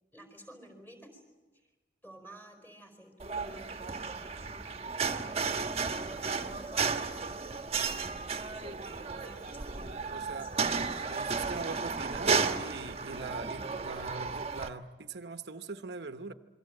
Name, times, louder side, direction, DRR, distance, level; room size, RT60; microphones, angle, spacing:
voice 1, 0.1-1.2 2.0-6.7 7.9-10.5, right 1 dB, 10° left, 5 dB, 4.6 m, -53 dB
sound 1, 3.2-14.7, right 4 dB, 35° right, 1.3 m, -33 dB
voice 2, 10.1-10.5 11.1-16.3, right 3 dB, 70° right, 9 dB, 1.0 m, -42 dB
27.0 x 23.5 x 7.8 m, 1.2 s
head